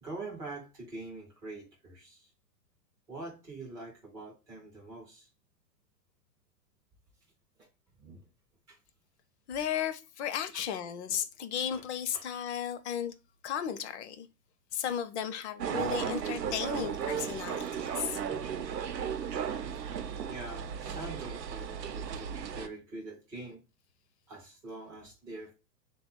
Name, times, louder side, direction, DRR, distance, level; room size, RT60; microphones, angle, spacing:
voice 1, 0.0-2.3 3.1-5.3 7.6-7.7 8.0-8.2 8.7-8.8 10.2-10.6 11.7-11.8 12.1-12.2 20.3-23.6 24.3-25.5, right 2 dB, 10° right, 0.4 m, -44 dB
voice 2, 9.5-13.1 13.4-14.3 14.7-18.2, left 9 dB, 45° left, 0.6 m, -35 dB
sound 1, 15.6-22.7, right 8 dB, 90° right, 0.7 m, -35 dB
3.5 x 2.3 x 4.4 m
hypercardioid pair, 125°, 48 cm